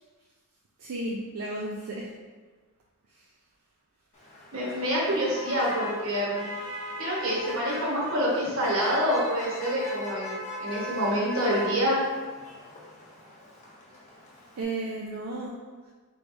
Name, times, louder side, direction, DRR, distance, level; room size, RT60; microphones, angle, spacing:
voice 1, 0.8-2.1 3.1-3.2 14.6-15.6, right 2 dB, 85° right, -3 dB, 0.4 m, -33 dB
Motor vehicle (road), 4.1-14.6, left 1 dB, 35° left, 0.7 m, -39 dB
voice 2, 4.5-6.5 7.0-12.0, equal, 65° right, -5 dB, 1.2 m, -27 dB
4.5 x 3.2 x 2.6 m, 1.4 s
head